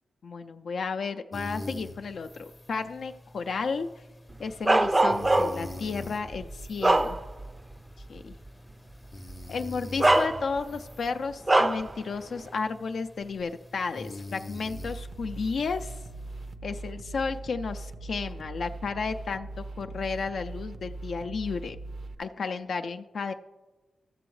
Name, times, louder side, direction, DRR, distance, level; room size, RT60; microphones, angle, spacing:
voice 1, 0.2-4.0 4.4-7.2 8.1-8.4 9.5-16.0 16.6-21.8 22.2-23.3, left 4 dB, 70° left, 7 dB, 0.3 m, -33 dB
sound 1, 1.3-16.5, left 1 dB, 25° left, 0.6 m, -45 dB
Bark, 4.7-5.7 6.3-7.6 8.0-8.2 9.3-9.4 10.0-10.8 11.5-11.9, right 2 dB, 25° right, 0.4 m, -23 dB
sound 2, 14.7-22.2, right 2 dB, 70° right, 0.6 m, -40 dB
13.5 x 6.9 x 3.1 m, 1.2 s
cardioid pair, 60°, 0 cm